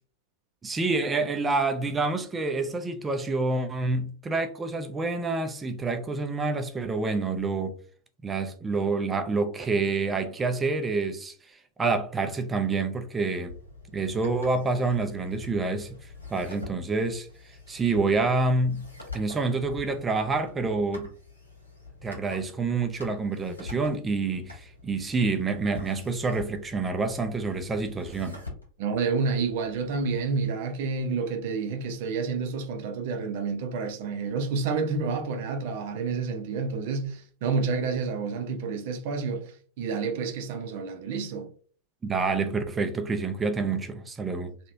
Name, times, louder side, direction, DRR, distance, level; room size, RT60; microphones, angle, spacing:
voice 1, 0.6-7.8 8.2-13.5 13.9-15.9 16.3-17.3 17.7-18.8 19.1-21.1 22.0-28.4 42.0-44.5, right 3 dB, 15° right, 0.6 m, -27 dB
sound 1, 13.5-30.5, left 3 dB, 85° left, 1.7 m, -46 dB
voice 2, 28.8-39.5 39.8-41.5, right 4 dB, 50° right, 0.8 m, -29 dB
3.3 x 3.0 x 2.7 m
figure-of-eight pair, 90°, 0 cm